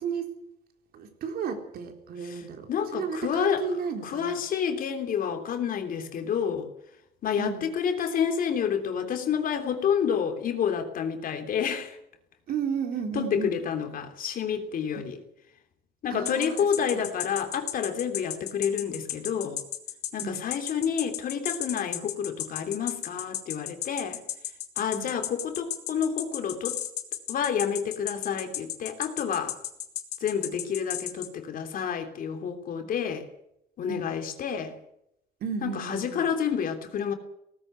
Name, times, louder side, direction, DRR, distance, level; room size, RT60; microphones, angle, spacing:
voice 1, 0.0-0.3 0.9-4.4 7.4-7.7 12.5-13.5 16.1-16.5 16.9-17.1 20.2-20.4 24.9-25.1 33.9-34.1 35.4-36.3, right 6 dB, 65° right, 4 dB, 3.9 m, -33 dB
voice 2, 2.7-3.7 4.0-6.7 7.2-12.0 13.1-15.2 16.0-19.6 20.1-24.2 24.8-26.8 27.3-29.5 30.2-33.3 33.8-34.7 35.6-37.1, left 7 dB, 55° left, 5 dB, 3.2 m, -29 dB
sound 1, 16.2-31.3, left 12 dB, 75° left, 2.6 m, -33 dB
18.5 x 15.0 x 9.6 m, 0.80 s
cardioid pair, 110°, 17 cm